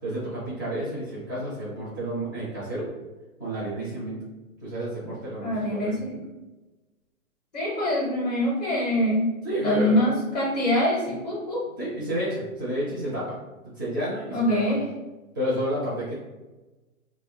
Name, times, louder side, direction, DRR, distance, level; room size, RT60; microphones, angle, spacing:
voice 1, 0.0-2.9 3.4-4.2 4.6-5.9 9.4-9.9 11.8-13.4 13.8-14.7 15.3-16.1, right 1 dB, 15° right, -8 dB, 0.4 m, -30 dB
voice 2, 5.4-6.2 7.5-9.3 9.6-11.6 14.3-14.8, left 1 dB, 30° left, -5 dB, 0.6 m, -24 dB
2.3 x 2.1 x 3.5 m, 1.1 s
hypercardioid pair, 150°, 43 cm